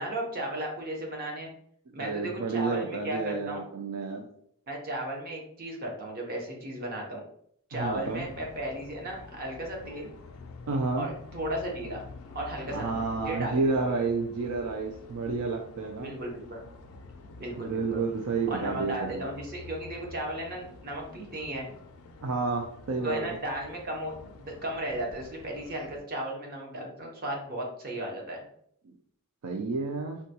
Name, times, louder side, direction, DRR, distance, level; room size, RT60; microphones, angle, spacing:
voice 1, 0.0-1.5 1.9-3.6 4.7-7.2 7.7-10.1 11.0-12.0 12.3-13.9 16.0-16.7 17.4-18.0 18.5-21.7 23.0-28.5, right 1 dB, 45° right, 0 dB, 0.8 m, -35 dB
voice 2, 2.0-4.2 7.7-8.2 10.7-11.1 12.7-16.1 17.6-19.2 22.2-23.3 28.8-28.9 29.4-30.2, right 4 dB, 75° right, 2 dB, 0.4 m, -30 dB
sound 1, 7.7-26.0, left 3 dB, 75° left, 0.4 m, -48 dB
3.7 x 2.2 x 2.7 m, 0.66 s
head